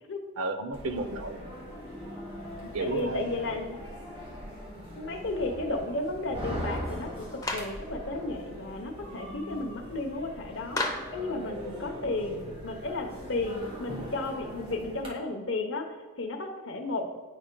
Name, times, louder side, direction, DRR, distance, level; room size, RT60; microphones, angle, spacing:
voice 1, 0.4-1.6 2.7-3.6, right 3 dB, 80° right, 7 dB, 0.6 m, -33 dB
sound 1, 0.7-15.1, equal, 25° right, 1.3 m, -41 dB
voice 2, 2.8-3.8 4.9-7.3 7.5-10.8 11.1-15.9 16.2-17.1, left 2 dB, 55° left, 4 dB, 0.8 m, -33 dB
Clapping, 7.4-7.8 10.8-11.2, left 2 dB, 15° left, 0.5 m, -31 dB
9.7 x 5.0 x 2.2 m, 1.4 s
head